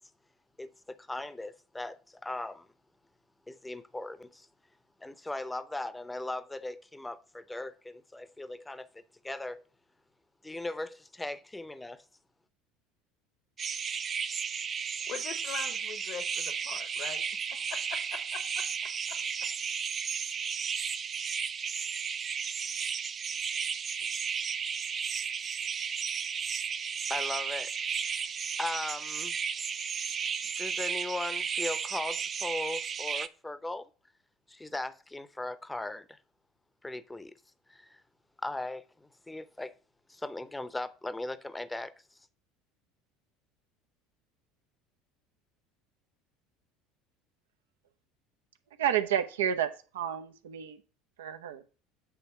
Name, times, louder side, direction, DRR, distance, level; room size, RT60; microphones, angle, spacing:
voice 1, 0.6-2.7 3.5-4.5 5.0-9.6 10.4-12.0 27.1-28.2 28.6-29.3 30.6-33.9 34.5-36.2 36.8-37.4 37.7-38.0 38.4-39.7 40.1-42.2, left 2 dB, 10° left, 0.7 m, -38 dB
sound 1, 13.6-33.3, right 6 dB, 35° right, 0.5 m, -34 dB
voice 2, 15.1-17.2 17.5-19.2, left 7 dB, 55° left, 1.0 m, -43 dB
voice 3, 48.8-50.8 51.2-51.6, right 9 dB, 75° right, 0.7 m, -30 dB
8.4 x 3.4 x 5.5 m
hypercardioid pair, 70°, 0 cm